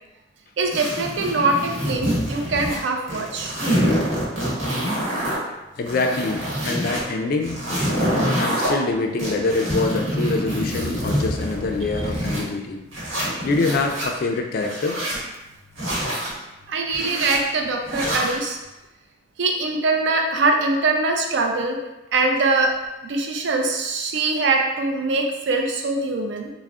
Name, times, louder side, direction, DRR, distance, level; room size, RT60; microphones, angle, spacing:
voice 1, 0.6-3.5 16.7-18.6 19.4-21.8 22.1-22.7 23.0-26.5, right 3 dB, 65° right, 2 dB, 0.4 m, -22 dB
sound 1, 0.7-2.8 3.1-5.4 5.8-7.0 7.4-8.7 9.2-12.4 12.9-14.1 14.6-15.2 15.7-16.3 16.9-17.4 17.9-18.4, equal, 85° right, 1.0 m, -26 dB
voice 2, 5.8-7.6 8.1-12.8 13.4-15.0, left 3 dB, 50° left, 4 dB, 0.3 m, -25 dB
3.5 x 2.0 x 2.3 m, 1.0 s
head